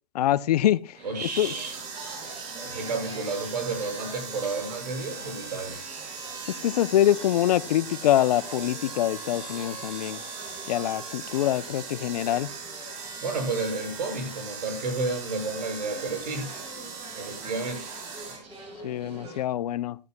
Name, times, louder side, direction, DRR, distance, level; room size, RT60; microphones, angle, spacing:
voice 1, 0.1-0.8 1.4-1.5 6.6-10.2 10.7-12.5 18.8-20.0, left 12 dB, 70° left, 0.6 m, -24 dB
sound 1, 0.9-19.4, right 2 dB, 30° right, 7.5 m, -45 dB
voice 2, 1.0-1.8 2.2-5.8 13.2-16.5 17.2-18.0, right 3 dB, 80° right, 6.2 m, -31 dB
sound 2, 1.1-18.4, right 5 dB, 55° right, 5.2 m, -39 dB
15.5 x 13.5 x 2.2 m
hypercardioid pair, 140°, 21 cm